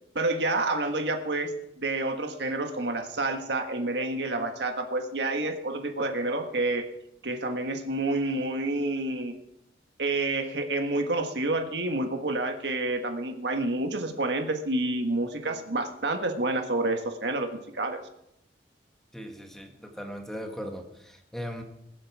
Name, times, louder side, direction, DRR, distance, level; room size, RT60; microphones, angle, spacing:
voice 1, 0.1-6.9 7.2-9.3 10.0-18.0, right 2 dB, 75° right, 6 dB, 1.5 m, -29 dB
voice 2, 19.1-21.6, equal, 5° left, 3 dB, 1.5 m, -38 dB
22.5 x 7.7 x 4.8 m, 0.79 s
head